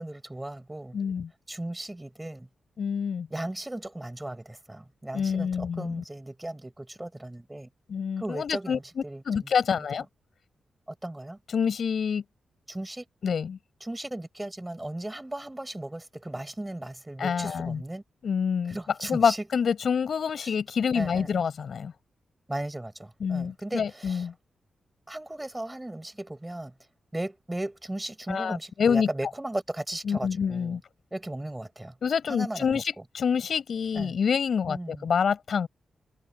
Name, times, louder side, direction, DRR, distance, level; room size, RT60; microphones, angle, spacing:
voice 1, 0.0-1.0 1.5-2.5 3.3-7.7 8.2-9.5 9.7-9.9 10.9-11.4 12.7-13.1 13.8-18.0 18.7-19.5 20.4-20.5 20.9-21.4 22.5-24.3 25.1-26.7 27.1-30.8 31.1-31.9 32.3-32.8 33.9-34.1 34.7-35.1, right 1 dB, 10° right, 5.6 m, -36 dB
voice 2, 0.9-1.3 2.8-3.3 5.1-6.0 7.9-10.1 11.5-12.2 13.2-13.6 17.2-17.8 18.2-18.8 19.1-21.9 23.2-24.3 28.3-29.1 30.0-30.8 32.0-35.7, left 6 dB, 55° left, 5.9 m, -27 dB
wide cardioid pair, 160°, 0 cm